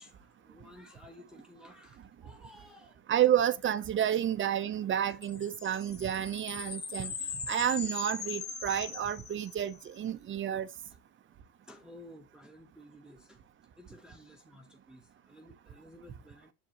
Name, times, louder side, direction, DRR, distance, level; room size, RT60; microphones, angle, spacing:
voice 1, 0.0-3.0 4.1-4.2 5.1-5.2 6.3-6.4 7.0-7.1 11.6-13.4 13.8-16.5, left 1 dB, ahead, 0.8 m, -54 dB
voice 2, 3.1-7.1 7.5-10.7, right 10 dB, 30° right, 0.7 m, -30 dB
sound 1, 5.2-9.8, left 5 dB, 25° left, 1.9 m, -40 dB
7.5 x 7.4 x 2.9 m
supercardioid pair, 120°, 37 cm